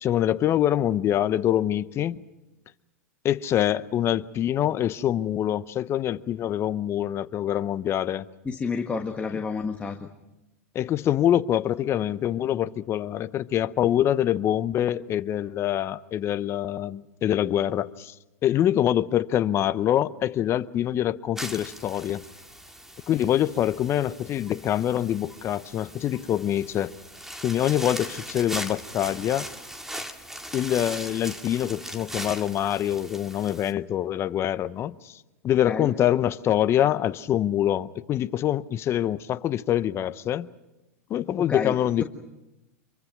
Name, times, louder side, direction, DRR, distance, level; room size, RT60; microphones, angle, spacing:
voice 1, 0.0-2.2 3.2-8.2 10.7-18.1 18.4-22.2 23.1-26.9 27.4-29.5 30.5-40.5 41.1-42.0, left 11 dB, 30° left, 0.8 m, -25 dB
voice 2, 8.4-10.1 35.6-35.9 41.5-41.7, left 5 dB, 15° left, 1.6 m, -29 dB
sound 1, 21.4-33.7, equal, 5° right, 1.9 m, -39 dB
25.5 x 23.5 x 6.0 m
hypercardioid pair, 110°, 8 cm